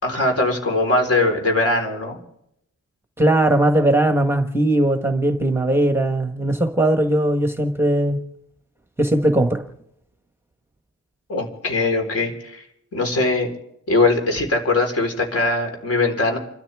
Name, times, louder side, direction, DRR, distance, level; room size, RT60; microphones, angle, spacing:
voice 1, 0.0-2.2 11.3-12.6 12.9-13.5 13.9-16.4, left 2 dB, 45° left, 4.2 m, -21 dB
voice 2, 3.2-8.2 9.0-9.6, right 1 dB, 10° right, 1.2 m, -19 dB
29.5 x 13.0 x 3.5 m
wide cardioid pair, 150°, 32 cm